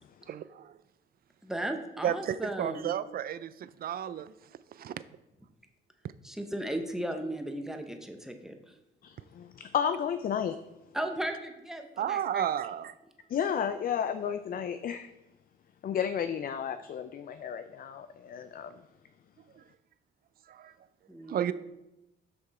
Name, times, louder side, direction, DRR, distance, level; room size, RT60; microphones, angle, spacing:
voice 1, 0.3-0.7 2.0-4.3 4.8-4.9 12.0-12.9 20.5-20.7 21.3-21.5, right 10 dB, 50° right, 0.4 m, -32 dB
voice 2, 1.4-2.9 6.2-8.7 10.9-12.5 21.1-21.5, right 1 dB, ahead, 0.9 m, -36 dB
voice 3, 9.0-10.6 13.3-15.1 15.8-18.8, left 8 dB, 45° left, 0.4 m, -32 dB
6.3 x 6.1 x 4.2 m
cardioid pair, 90°, 20 cm